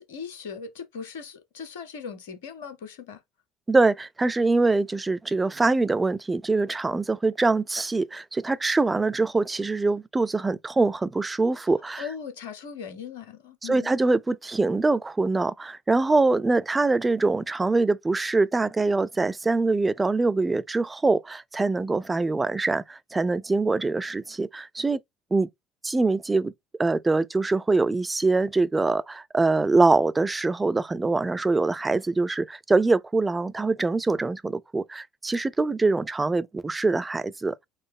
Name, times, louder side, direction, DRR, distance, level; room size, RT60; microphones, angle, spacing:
voice 1, 0.0-3.2 12.0-13.9, left 6 dB, 70° left, 0.9 m, -39 dB
voice 2, 3.7-12.0 13.6-25.0 25.3-25.5 25.8-26.5 26.8-37.6, right 3 dB, 20° right, 0.5 m, -24 dB
4.1 x 3.1 x 3.5 m
figure-of-eight pair, 60°, 0 cm